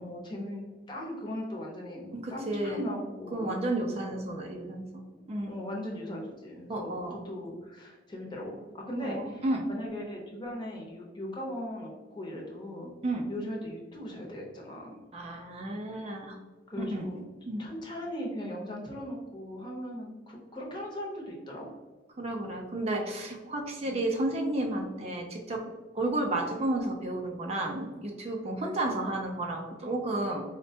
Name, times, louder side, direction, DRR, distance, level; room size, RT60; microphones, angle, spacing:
voice 1, 0.0-3.6 3.9-4.2 5.5-12.9 13.3-15.0 16.7-17.2 17.6-21.7 23.8-24.0 26.0-26.1, equal, 25° left, -2 dB, 0.6 m, -39 dB
voice 2, 2.1-2.8 3.3-5.0 5.3-5.6 6.7-7.2 9.0-9.7 13.0-13.3 15.1-16.4 16.8-17.1 17.5-17.6 22.2-25.6 25.9-30.4, right 1 dB, 35° right, 1 dB, 0.4 m, -32 dB
4.2 x 2.1 x 2.7 m, 1.3 s
head